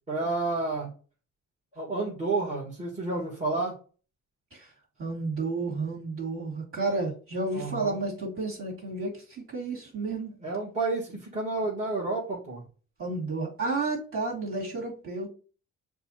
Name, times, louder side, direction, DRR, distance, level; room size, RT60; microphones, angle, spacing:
voice 1, 0.1-0.9 1.8-3.7 7.5-8.0 10.4-12.6, right 3 dB, 25° right, 1.6 m, -30 dB
voice 2, 5.0-10.3 13.0-15.3, right 3 dB, 45° right, 2.4 m, -31 dB
6.7 x 2.4 x 2.8 m
cardioid pair, 90°, 30 cm